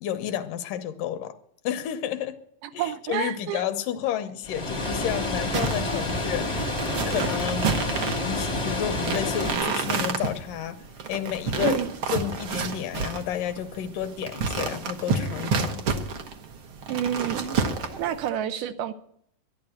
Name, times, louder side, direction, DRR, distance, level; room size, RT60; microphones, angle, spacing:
voice 1, 0.0-1.4 1.6-2.4 2.7-6.6 7.1-7.7 8.2-10.8 11.1-11.8 12.1-15.8, left 10 dB, 80° left, 9 dB, 2.5 m, -31 dB
voice 2, 2.6-3.6 11.6-11.9 16.9-17.6 18.0-18.9, right 10 dB, 80° right, 10 dB, 2.4 m, -29 dB
Water, 4.4-9.5, left 2 dB, 20° left, 0.8 m, -29 dB
sound 1, 5.5-18.3, right 5 dB, 60° right, 1.4 m, -30 dB
11.5 x 11.5 x 7.7 m, 0.68 s
omnidirectional pair, 3.9 m